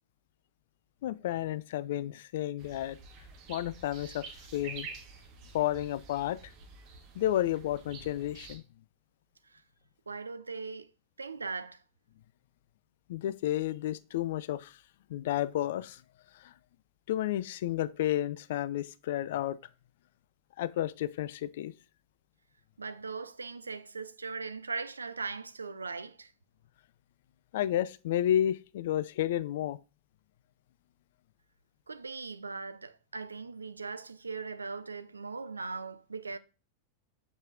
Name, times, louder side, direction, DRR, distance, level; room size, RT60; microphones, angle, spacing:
voice 1, 1.0-3.0 3.5-4.3 4.5-4.9 5.5-6.4 7.1-8.6 13.1-14.8 15.1-16.0 16.4-16.5 17.1-19.6 20.6-21.7 27.5-29.8, left 12 dB, 55° left, 0.3 m, -31 dB
sound 1, 2.6-8.6, right 5 dB, 40° right, 1.3 m, -48 dB
voice 2, 10.1-10.9 11.2-11.8 22.8-26.3 31.9-36.4, right 4 dB, 75° right, 0.4 m, -39 dB
7.2 x 5.4 x 2.5 m
figure-of-eight pair, 90°, 0 cm